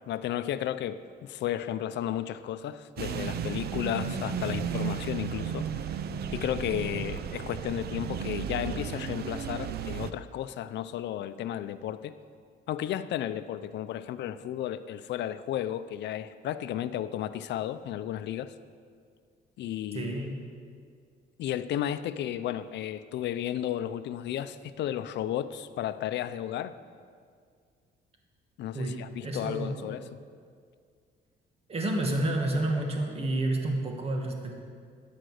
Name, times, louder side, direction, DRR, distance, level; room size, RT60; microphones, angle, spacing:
voice 1, 0.1-5.7 6.3-12.1 12.7-18.5 19.6-20.2 21.4-26.7 28.6-30.0, left 11 dB, 70° left, 12 dB, 0.6 m, -33 dB
sound 1, 3.0-10.1, right 8 dB, 60° right, 0.7 m, -34 dB
voice 2, 19.9-20.3 28.7-29.9 31.7-34.5, right 1 dB, 35° right, 2 dB, 2.0 m, -30 dB
13.0 x 10.5 x 6.5 m, 2.1 s
cardioid pair, 125°, 19 cm